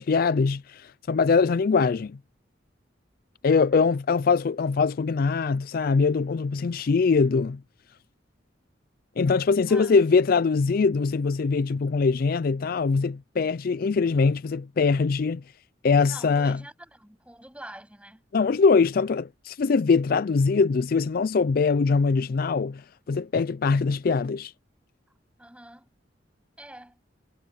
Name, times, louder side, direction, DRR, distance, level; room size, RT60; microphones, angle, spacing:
voice 1, 0.0-2.2 3.4-7.6 9.2-15.4 15.8-16.6 18.3-24.5, left 4 dB, 50° left, 0.4 m, -22 dB
voice 2, 3.6-4.0 9.7-9.9 16.1-18.2 25.4-25.9 26.6-27.0, right 1 dB, 5° right, 7.9 m, -46 dB
head